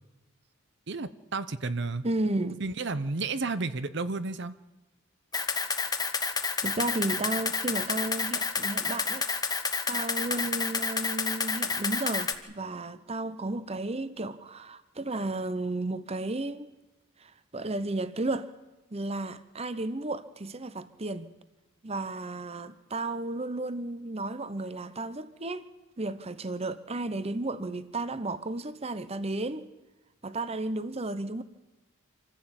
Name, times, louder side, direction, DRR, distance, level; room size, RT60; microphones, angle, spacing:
voice 1, 0.9-2.0 2.6-4.5, right 3 dB, 60° right, 0.9 m, -32 dB
voice 2, 2.0-2.6 6.6-9.2 9.9-16.7 17.2-18.5 18.9-21.3 21.8-25.6 26.0-29.7 30.2-31.4, right 2 dB, 30° right, 0.9 m, -33 dB
Camera, 5.3-12.3, left 5 dB, 20° left, 1.4 m, -29 dB
26.5 x 15.0 x 8.9 m
head